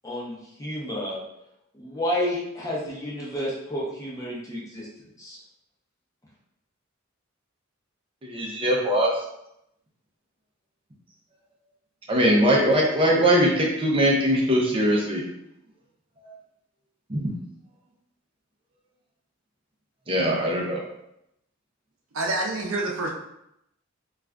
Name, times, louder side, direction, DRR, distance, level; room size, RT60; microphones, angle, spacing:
voice 1, 0.0-1.2 1.7-4.9 5.2-5.4, left 1 dB, 15° left, -5 dB, 0.7 m, -30 dB
voice 2, 8.2-9.1 12.1-15.2 17.1-17.3 20.1-20.8, equal, 25° right, -1 dB, 0.6 m, -21 dB
voice 3, 22.1-23.1, right 2 dB, 85° right, 0 dB, 0.6 m, -27 dB
2.4 x 2.4 x 3.3 m, 0.81 s
head